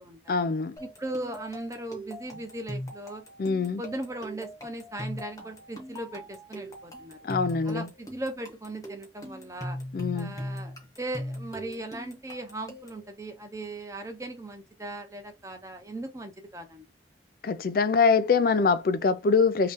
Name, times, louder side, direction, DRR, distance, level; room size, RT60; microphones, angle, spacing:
voice 1, 0.3-0.7 3.4-3.8 7.2-7.9 9.9-10.3 17.4-19.7, left 5 dB, 50° left, 0.3 m, -24 dB
sound 1, 0.8-13.1, equal, 20° left, 1.0 m, -40 dB
voice 2, 0.8-3.2 3.6-7.2 7.6-9.8 10.1-16.8, right 1 dB, 15° right, 0.7 m, -38 dB
3.1 x 2.8 x 3.5 m
head